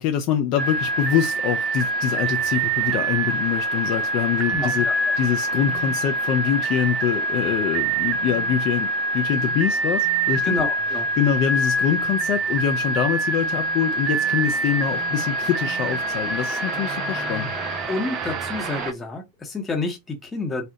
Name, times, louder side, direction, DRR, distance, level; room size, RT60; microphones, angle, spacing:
voice 1, 0.0-4.9 5.2-10.6 11.2-17.5, left 9 dB, 40° left, 0.3 m, -24 dB
sound 1, 0.6-18.9, right 2 dB, 30° right, 0.4 m, -25 dB
voice 2, 4.5-4.9 10.4-11.1 17.9-20.7, left 3 dB, 15° left, 0.8 m, -29 dB
2.7 x 2.1 x 2.6 m
figure-of-eight pair, 90°, 0 cm